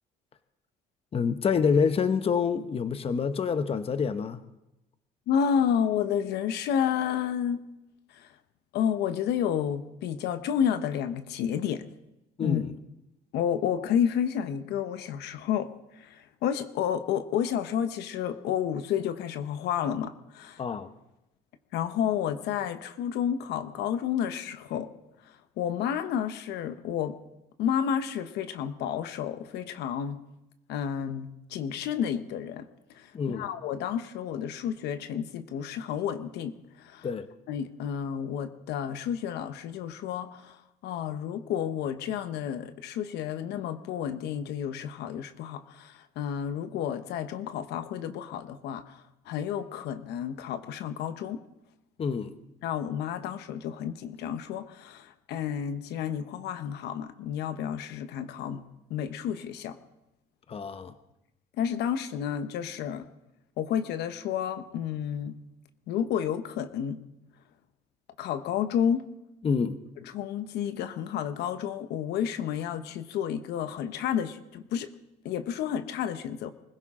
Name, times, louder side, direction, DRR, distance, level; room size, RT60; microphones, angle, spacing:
voice 1, 1.1-4.4 12.4-12.7 20.6-20.9 33.1-33.5 37.0-37.3 52.0-52.3 60.5-60.9 69.4-69.8, left 6 dB, 35° left, 11 dB, 0.9 m, -27 dB
voice 2, 5.3-7.6 8.1-8.3 8.7-11.9 12.4-12.6 13.3-20.6 21.7-24.9 25.6-27.2 27.6-30.2 30.7-32.7 32.9-37.1 37.5-51.4 52.6-59.8 61.6-63.1 63.6-65.4 65.9-67.0 68.2-69.1 70.1-74.9 75.2-76.5, left 8 dB, 80° left, 10 dB, 1.0 m, -31 dB
24.5 x 16.0 x 3.7 m, 0.93 s
cardioid pair, 110°, 17 cm